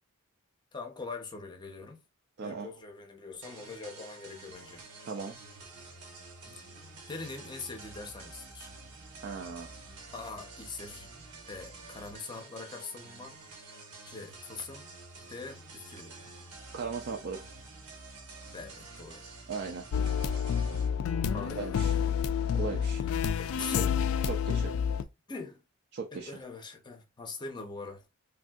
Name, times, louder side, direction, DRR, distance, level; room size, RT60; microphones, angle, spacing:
voice 1, 0.7-2.0 2.4-4.8 6.5-6.6 7.1-8.7 10.1-11.1 11.5-13.4 14.1-14.9 15.3-16.2 18.5-19.3 21.3-24.0 25.3-25.6 26.1-28.1, left 4 dB, 20° left, 0.6 m, -43 dB
voice 2, 2.4-2.7 5.1-5.4 9.2-10.0 16.7-17.4 19.5-19.9 21.6-22.0 22.5-23.0 24.2-24.7 25.9-26.3, right 5 dB, 50° right, 0.4 m, -37 dB
sound 1, 3.4-20.9, right 3 dB, 85° right, 1.0 m, -49 dB
sound 2, 19.9-25.0, left 7 dB, 65° left, 0.3 m, -29 dB
3.4 x 2.6 x 2.3 m
head